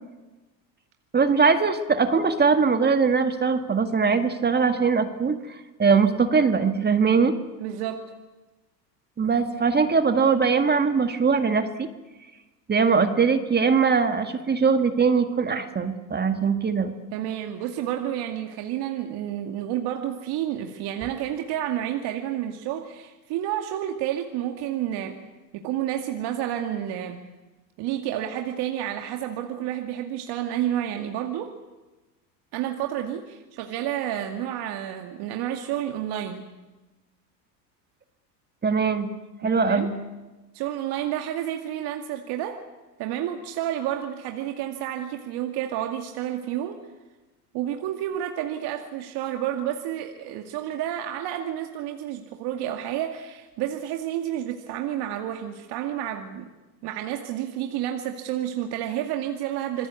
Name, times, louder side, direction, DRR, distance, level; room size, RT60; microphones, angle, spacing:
voice 1, 1.1-5.4 5.8-7.3 9.2-11.9 12.7-16.9 38.6-39.1 39.4-39.9, right 5 dB, 20° right, 8 dB, 1.8 m, -21 dB
voice 2, 7.6-8.0 17.1-25.2 25.5-27.2 27.8-31.5 32.5-36.5 39.4-39.9 40.5-42.6 43.0-46.8 47.5-56.5 56.8-59.9, right 11 dB, 50° right, 4 dB, 2.2 m, -30 dB
26.5 x 20.0 x 8.3 m, 1.1 s
hypercardioid pair, 100°, 49 cm